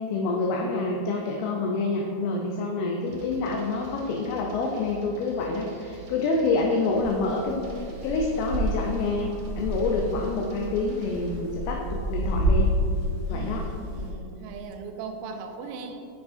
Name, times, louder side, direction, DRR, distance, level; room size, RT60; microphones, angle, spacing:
voice 1, 0.0-9.3 9.6-12.7 13.3-13.7, left 3 dB, 80° left, 0 dB, 3.0 m, -27 dB
sound 1, 3.1-11.4, right 4 dB, 70° right, 2.4 m, -46 dB
sound 2, 7.0-14.1, equal, 65° left, 2.0 m, -29 dB
voice 2, 13.3-16.1, right 5 dB, 85° right, 4 dB, 3.3 m, -38 dB
8.2 x 6.6 x 2.6 m, 2.6 s
omnidirectional pair, 5.9 m